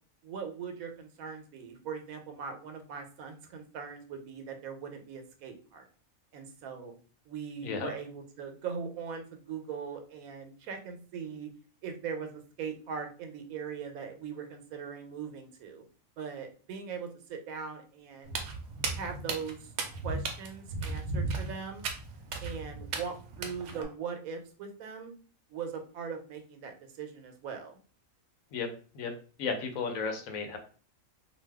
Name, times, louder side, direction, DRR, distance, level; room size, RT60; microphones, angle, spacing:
voice 1, 0.2-5.9 6.3-6.9 7.3-11.5 11.8-15.8 16.2-18.3 18.9-19.7 20.0-21.8 22.4-25.1 25.5-27.8, right 6 dB, 90° right, 5 dB, 1.1 m, -40 dB
Walk footsteps, 18.2-23.8, right 3 dB, 65° right, 0.9 m, -36 dB
voice 2, 29.4-30.6, left 5 dB, 80° left, 5 dB, 1.1 m, -33 dB
2.6 x 2.2 x 3.4 m, 0.40 s
omnidirectional pair, 1.4 m